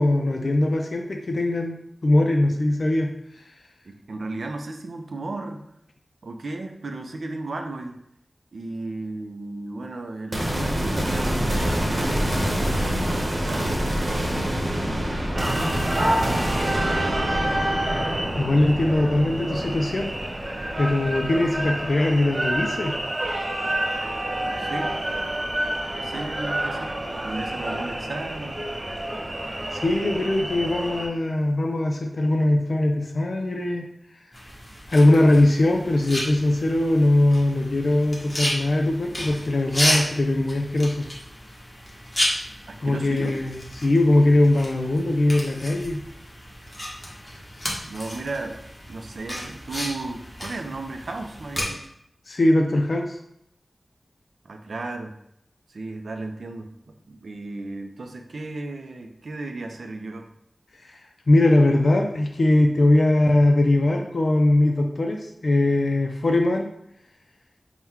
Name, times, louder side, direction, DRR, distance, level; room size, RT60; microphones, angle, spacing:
voice 1, 0.0-1.8 2.0-3.4 18.4-20.1 20.8-23.0 29.7-33.8 34.9-41.1 42.8-46.0 52.3-53.2 60.8-61.0 61.3-66.7, left 1 dB, 65° left, 2 dB, 0.3 m, -21 dB
voice 2, 3.8-5.6 6.2-8.0 8.5-15.3 16.0-17.5 24.4-24.9 25.9-26.9 27.2-28.6 42.7-43.3 47.8-48.6 48.9-51.9 54.4-55.1 55.7-60.3, right 2 dB, 85° right, 5 dB, 0.4 m, -35 dB
sound 1, 10.3-21.7, equal, 50° right, 0.9 m, -26 dB
sound 2, 15.3-31.1, right 1 dB, 35° right, 0.6 m, -28 dB
sound 3, 34.3-51.6, equal, 15° left, 1.0 m, -32 dB
3.5 x 2.1 x 4.3 m, 0.75 s
wide cardioid pair, 70°, 0 cm